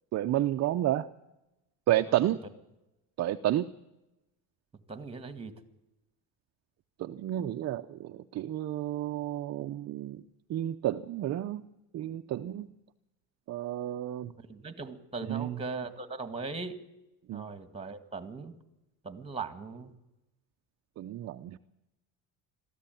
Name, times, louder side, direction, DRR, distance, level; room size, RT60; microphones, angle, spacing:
voice 1, 0.1-1.1 1.9-2.4 3.2-3.7 7.0-10.2 10.5-11.6 11.9-12.7 13.5-14.3 15.3-15.6 17.3-17.5 21.0-21.6, right 13 dB, 40° right, 7 dB, 0.6 m, -31 dB
voice 2, 4.9-5.5 14.4-16.8 17.3-18.5 19.0-19.9, right 4 dB, 15° right, 11 dB, 1.9 m, -39 dB
22.0 x 14.5 x 9.2 m, 0.95 s
cardioid pair, 130°, 41 cm